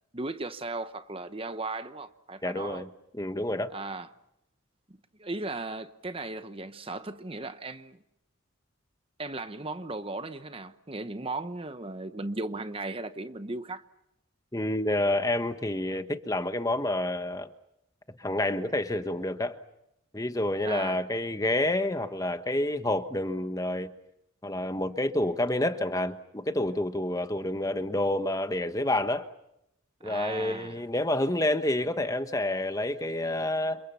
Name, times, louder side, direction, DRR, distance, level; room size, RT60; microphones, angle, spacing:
voice 1, 0.1-2.8 3.7-4.1 4.9-8.0 9.2-13.8 20.6-21.1 30.0-30.8, right 2 dB, 25° right, 0.9 m, -36 dB
voice 2, 2.4-2.9 3.1-3.7 14.5-17.5 18.2-19.6 20.1-23.9 24.4-29.3 30.0-33.8, left 1 dB, 15° left, 1.2 m, -28 dB
29.0 x 29.0 x 5.7 m
head